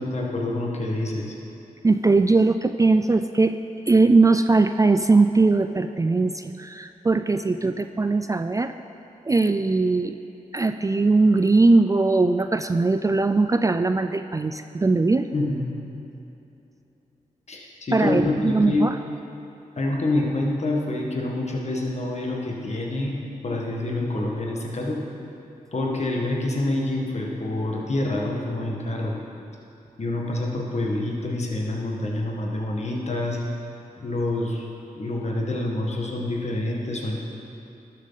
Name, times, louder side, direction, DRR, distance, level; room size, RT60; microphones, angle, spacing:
voice 1, 0.0-1.4 15.3-15.6 17.5-18.9 19.8-23.1 23.4-25.0 25.7-29.2 30.0-33.4 34.0-34.7 35.0-37.2, left 2 dB, 50° left, -2 dB, 1.7 m, -27 dB
voice 2, 1.8-3.5 3.9-8.7 9.3-10.2 10.5-15.3 17.9-19.0, right 3 dB, 20° right, 9 dB, 0.3 m, -20 dB
12.0 x 7.4 x 4.1 m, 2.9 s
cardioid pair, 50°, 15 cm